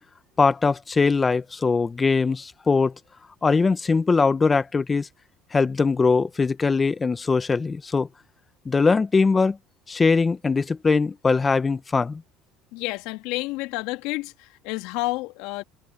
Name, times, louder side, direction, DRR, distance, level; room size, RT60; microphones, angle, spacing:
voice 1, 0.4-2.9 3.4-5.1 5.5-8.1 8.6-9.6 9.9-12.2, left 4 dB, 25° left, 1.5 m, -21 dB
voice 2, 12.7-15.6, left 21 dB, 75° left, 2.3 m, -30 dB
supercardioid pair, 85°, 0 cm